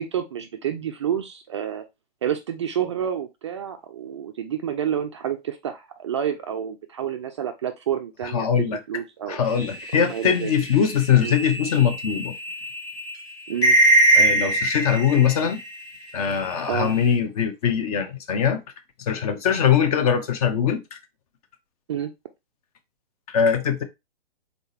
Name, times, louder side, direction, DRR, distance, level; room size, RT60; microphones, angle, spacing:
voice 1, 0.0-1.8 2.2-9.4 9.9-10.5 11.2-11.4 13.5-13.8 16.7-16.9 21.9-22.1, right 9 dB, 30° right, 0.4 m, -29 dB
voice 2, 8.3-8.8 9.3-12.3 14.1-15.6 16.1-18.6 19.1-21.0 23.3-23.8, left 8 dB, 35° left, 0.8 m, -22 dB
sound 1, 9.6-15.9 16.2-17.1, right 1 dB, 85° left, 2.0 m, -22 dB
3.9 x 3.7 x 2.8 m
hypercardioid pair, 130°, 31 cm